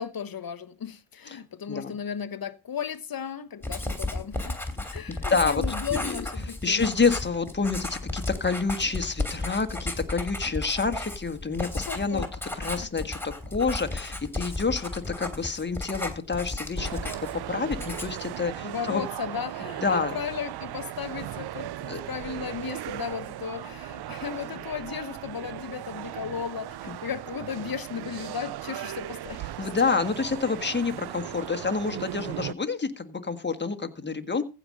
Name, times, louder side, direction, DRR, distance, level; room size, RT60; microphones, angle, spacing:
voice 1, 0.0-4.6 4.9-7.2 11.9-12.3 12.6-12.9 18.6-29.4, left 7 dB, 45° left, 1.0 m, -35 dB
Writing, 3.6-17.4 17.7-18.3, left 2 dB, 5° left, 3.1 m, -33 dB
voice 2, 4.8-5.6 5.9-6.2 6.6-12.2 12.5-17.0 17.5-19.0 19.8-20.2 21.9-22.0 26.9-27.0 29.6-34.4, left 4 dB, 20° left, 1.5 m, -28 dB
sound 1, 16.8-32.5, right 13 dB, 55° right, 0.5 m, -37 dB
15.0 x 5.2 x 6.4 m
cardioid pair, 75°, 47 cm